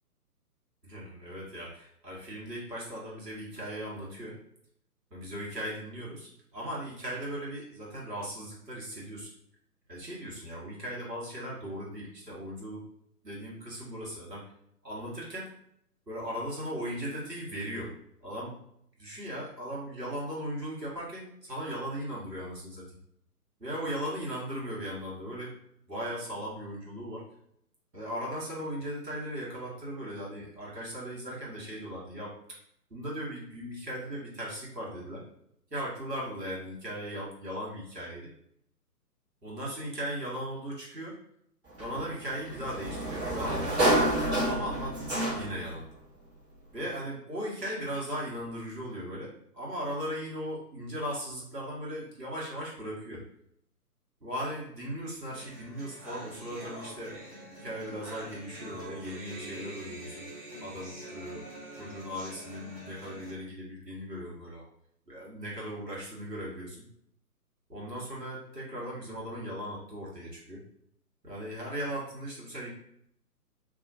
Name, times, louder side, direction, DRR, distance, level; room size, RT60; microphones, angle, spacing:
voice 1, 0.8-4.4 5.1-9.3 9.9-12.8 13.2-14.4 14.8-15.5 16.1-17.9 18.2-18.6 19.0-23.0 23.6-25.5 25.9-27.2 27.9-32.3 32.9-35.2 35.7-38.3 39.4-41.2 41.8-44.0 44.5-45.8 46.7-53.2 54.2-57.1 57.6-60.3 60.6-61.5 61.7-64.6 65.1-66.8 67.7-70.6 71.2-72.7, equal, 90° right, -5 dB, 1.5 m, -38 dB
Sliding door, 41.8-45.7, right 1 dB, 40° right, 1.2 m, -29 dB
sound 1, 55.3-63.3, right 1 dB, 20° right, 1.2 m, -45 dB
2.7 x 2.6 x 2.6 m, 0.72 s
figure-of-eight pair, 135°, 47 cm